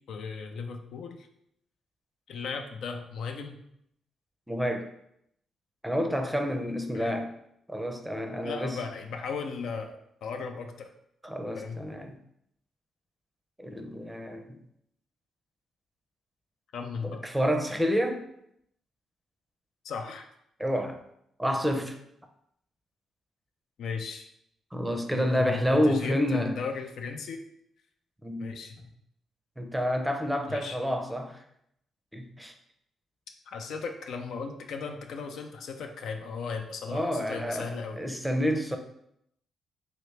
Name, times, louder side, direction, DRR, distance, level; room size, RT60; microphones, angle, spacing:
voice 1, 0.1-1.3 2.3-3.6 6.9-7.2 8.4-10.9 11.5-11.8 16.7-17.2 19.8-20.3 23.8-24.3 25.1-27.4 28.4-28.9 30.5-30.8 33.5-38.0, left 5 dB, 75° left, 4 dB, 0.4 m, -36 dB
voice 2, 4.5-4.9 5.8-7.3 7.7-8.8 11.2-12.1 13.6-14.6 17.0-18.2 20.6-21.0 21.4-22.0 24.7-26.6 28.2-28.5 29.6-31.4 32.1-32.5 36.9-37.7 38.0-38.8, equal, 5° right, 5 dB, 0.5 m, -29 dB
3.0 x 2.9 x 3.2 m, 0.74 s
supercardioid pair, 60°, 0 cm